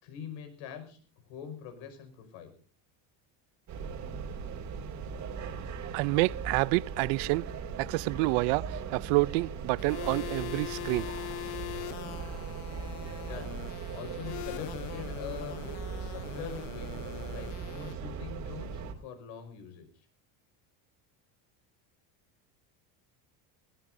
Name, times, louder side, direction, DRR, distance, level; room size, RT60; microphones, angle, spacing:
voice 1, 0.0-2.5 13.2-13.5 13.9-15.6 16.0-16.9 17.3-19.9, left 8 dB, 80° left, 5.6 m, -43 dB
sound 1, 3.7-18.9, right 5 dB, 35° right, 2.7 m, -39 dB
voice 2, 5.9-7.4 7.8-11.1, right 23 dB, 80° right, 0.6 m, -28 dB
sound 2, 9.8-17.9, left 18 dB, 55° left, 0.9 m, -42 dB
20.5 x 18.5 x 2.6 m
cardioid pair, 170°, 47 cm